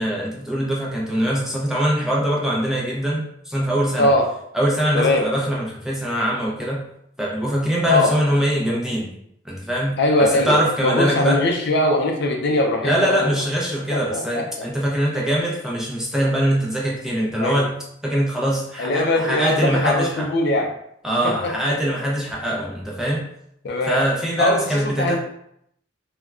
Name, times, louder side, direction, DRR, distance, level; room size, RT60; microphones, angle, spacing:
voice 1, 0.0-4.1 4.5-6.8 7.2-9.1 9.4-11.4 12.8-20.3 21.0-23.2 23.9-25.2, equal, 5° right, -4 dB, 0.6 m, -23 dB
voice 2, 10.0-13.4 13.7-14.7 17.4-17.6 18.8-20.7 21.2-21.5 23.6-24.0 24.4-25.2, left 2 dB, 60° left, 2 dB, 0.4 m, -21 dB
3.5 x 2.2 x 2.3 m, 0.73 s
head